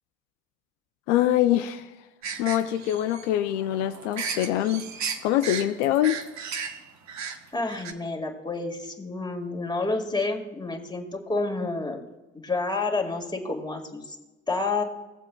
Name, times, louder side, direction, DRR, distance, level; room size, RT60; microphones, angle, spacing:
voice 1, 1.1-1.9 2.4-4.8 5.2-6.2, left 12 dB, 85° left, 8 dB, 0.5 m, -24 dB
sound 1, 2.2-7.9, right 6 dB, 55° right, 1.0 m, -35 dB
voice 2, 7.5-12.1 12.4-14.2 14.5-14.8, left 3 dB, 10° left, 2 dB, 1.8 m, -29 dB
19.5 x 7.4 x 2.3 m, 1.1 s
hypercardioid pair, 60°, 34 cm